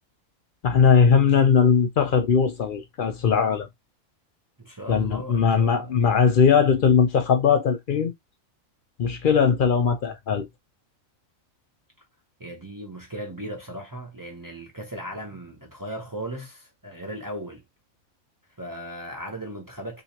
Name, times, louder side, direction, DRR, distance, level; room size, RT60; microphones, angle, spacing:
voice 1, 0.6-3.7 4.9-8.1 9.0-10.5, left 6 dB, 65° left, 0.5 m, -19 dB
voice 2, 4.6-6.1 12.4-17.6 18.6-20.0, right 1 dB, 25° right, 0.5 m, -37 dB
3.1 x 3.0 x 2.8 m
omnidirectional pair, 1.4 m